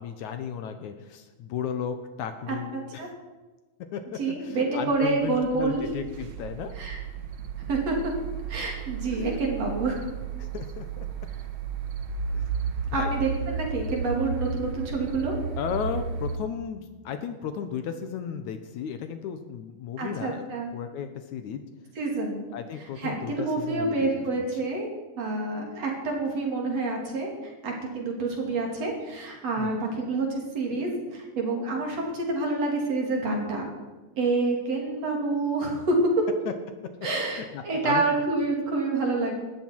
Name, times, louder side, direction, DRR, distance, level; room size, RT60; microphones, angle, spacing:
voice 1, 0.0-3.1 3.9-6.8 9.0-9.3 10.4-11.1 12.3-12.4 12.9-13.1 15.6-21.6 22.5-24.4 29.6-29.7 36.5-36.6 37.3-38.0, left 7 dB, 70° left, 8 dB, 2.2 m, -35 dB
voice 2, 2.5-3.1 4.2-5.8 6.8-7.0 7.7-8.0 8.5-10.0 12.9-15.4 20.0-20.7 22.0-22.4 23.0-24.9 25.2-33.7 34.2-36.2 37.0-39.4, right 3 dB, 50° right, 0 dB, 3.9 m, -28 dB
sound 1, 5.2-16.4, right 5 dB, 70° right, 1.2 m, -33 dB
18.5 x 13.5 x 4.6 m, 1.2 s
omnidirectional pair, 3.8 m